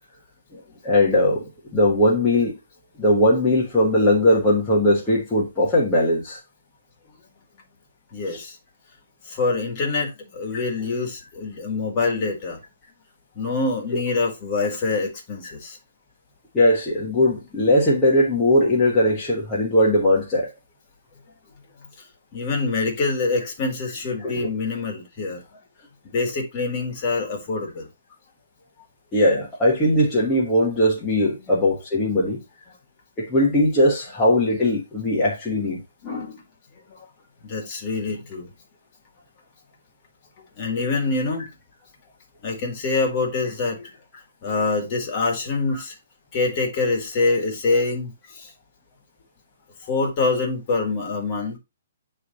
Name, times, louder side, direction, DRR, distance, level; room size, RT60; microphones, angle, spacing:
voice 1, 0.5-1.4 1.7-2.5 3.0-6.4 8.3-8.4 10.5-10.6 16.5-20.5 24.2-24.5 29.1-32.4 33.2-35.8 45.7-45.8, left 1 dB, 10° left, 1.3 m, -19 dB
voice 2, 8.1-8.6 9.2-12.6 13.3-15.8 22.0-22.1 22.3-25.6 26.0-27.9 31.4-31.5 36.0-36.4 36.9-37.1 37.4-38.5 40.6-41.5 42.4-43.9 44.4-46.0 46.3-48.5 49.8-51.6, left 3 dB, 25° left, 1.9 m, -25 dB
9.2 x 3.3 x 4.0 m
hypercardioid pair, 170°, 0 cm